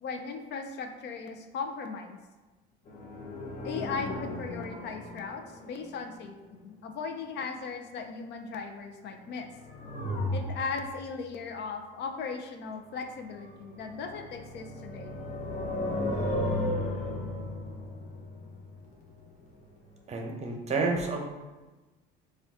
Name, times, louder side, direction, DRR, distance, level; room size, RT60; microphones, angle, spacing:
voice 1, 0.0-2.2 3.6-9.5 10.3-15.2, left 5 dB, 55° left, 5 dB, 0.6 m, -38 dB
sound 1, 2.9-5.9 9.3-11.0 13.4-19.4 19.7-19.8, left 1 dB, 35° left, 0.9 m, -35 dB
voice 2, 20.1-21.3, right 3 dB, 30° right, 2 dB, 0.8 m, -30 dB
5.1 x 2.4 x 3.6 m, 1.2 s
supercardioid pair, 105°, 21 cm